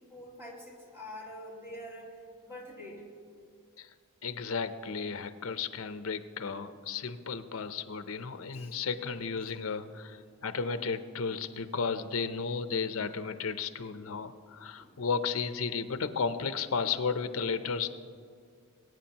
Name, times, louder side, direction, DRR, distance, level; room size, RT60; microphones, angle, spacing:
voice 1, 0.0-2.2 2.4-3.1 8.5-8.8 9.4-9.5 14.8-15.0, left 1 dB, 10° right, -3 dB, 2.1 m, -46 dB
voice 2, 4.2-17.9, left 5 dB, 75° left, 11 dB, 0.7 m, -34 dB
22.0 x 9.1 x 2.9 m, 2.2 s
head